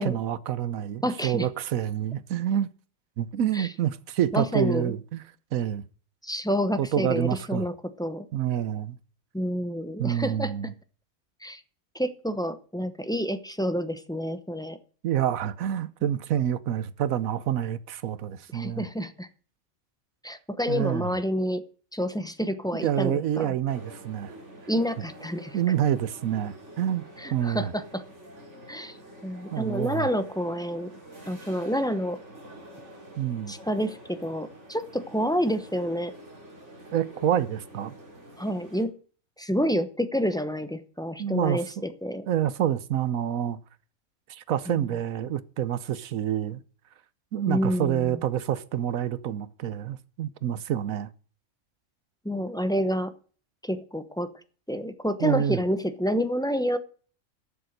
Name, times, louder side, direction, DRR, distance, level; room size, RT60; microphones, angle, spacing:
voice 1, 0.0-2.7 3.2-5.2 5.5-5.8 6.8-7.7 8.3-9.0 10.0-10.7 15.0-18.9 20.7-21.2 22.8-24.4 25.5-27.0 27.3-27.7 29.5-30.1 33.2-33.6 36.9-37.9 41.2-41.8 42.3-43.6 44.3-46.6 47.3-51.1 55.2-55.6, right 10 dB, 80° right, 1.2 m, -27 dB
voice 2, 1.0-1.5 3.5-3.7 4.3-4.9 6.2-8.3 9.3-10.5 11.4-11.6 11.9-14.8 18.5-19.3 20.2-21.6 21.9-23.5 24.7-25.6 27.2-28.0 28.7-30.9 31.3-32.2 33.5-36.1 38.4-38.9 39.4-42.3 44.7-44.9 47.5-48.2 52.2-53.1 53.6-54.3 54.7-56.8, equal, 5° left, 0.6 m, -28 dB
sound 1, 23.7-38.8, right 1 dB, 60° right, 3.1 m, -47 dB
12.5 x 7.1 x 6.6 m
omnidirectional pair, 1.4 m